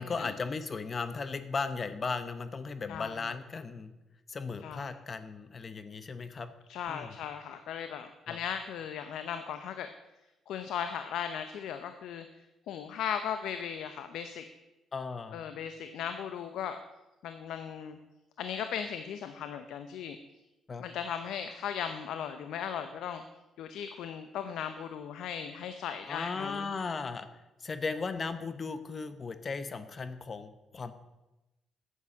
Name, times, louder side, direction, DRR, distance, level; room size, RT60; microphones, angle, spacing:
voice 1, 0.0-3.9 4.3-6.5 6.9-7.2 8.3-8.4 14.9-15.5 20.7-20.8 26.1-27.3 27.6-30.9, left 4 dB, 40° left, 11 dB, 0.9 m, -36 dB
voice 2, 6.7-9.9 10.5-12.2 12.7-14.5 15.3-16.8 17.2-18.0 18.4-20.2 20.8-23.2 23.6-26.7, left 8 dB, 80° left, 9 dB, 0.8 m, -37 dB
9.5 x 8.4 x 7.3 m, 1.0 s
cardioid pair, 90°, 0 cm